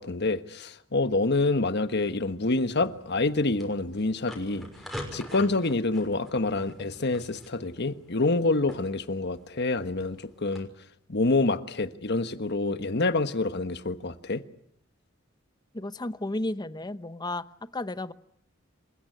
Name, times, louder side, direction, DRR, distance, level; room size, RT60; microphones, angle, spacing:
voice 1, 0.0-4.7 5.1-10.7 11.1-14.4, left 2 dB, 55° left, 1.4 m, -27 dB
sound 1, 2.7-10.6, left 1 dB, ahead, 6.2 m, -45 dB
voice 2, 15.7-18.1, left 2 dB, 20° left, 0.9 m, -33 dB
27.5 x 16.0 x 9.9 m
head